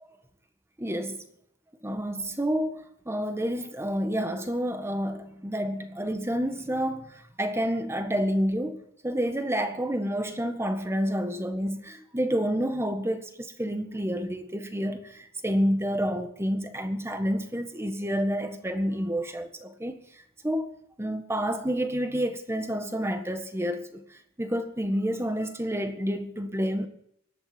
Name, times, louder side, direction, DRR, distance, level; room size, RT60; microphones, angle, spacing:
voice 1, 0.8-1.2 1.8-20.0 20.4-20.7 21.0-24.0 24.4-26.9, equal, 15° right, 1.6 m, -29 dB
17.5 x 12.0 x 6.1 m
head